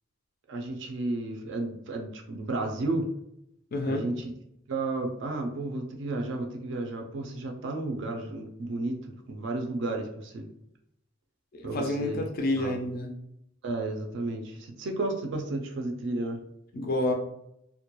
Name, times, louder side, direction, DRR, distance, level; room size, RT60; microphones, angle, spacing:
voice 1, 0.5-3.1 3.8-4.3 4.7-10.5 11.6-12.2 12.6-12.8 13.6-16.4, right 2 dB, 60° right, 3 dB, 0.4 m, -32 dB
voice 2, 3.7-4.1 11.5-13.1 16.7-17.1, left 1 dB, 45° left, 2 dB, 0.3 m, -29 dB
2.2 x 2.1 x 2.9 m, 0.79 s
head